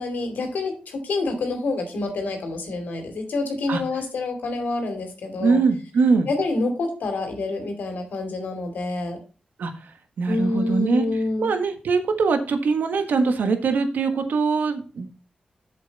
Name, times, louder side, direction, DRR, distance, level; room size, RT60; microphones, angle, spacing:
voice 1, 0.0-5.6 6.3-9.2 10.3-11.5, left 2 dB, 85° left, 5 dB, 2.6 m, -27 dB
voice 2, 5.4-6.3 9.6-9.7 10.2-11.0 11.4-15.1, right 4 dB, 85° right, 8 dB, 1.4 m, -22 dB
7.6 x 7.6 x 4.1 m, 0.34 s
cardioid pair, 65°, 3 cm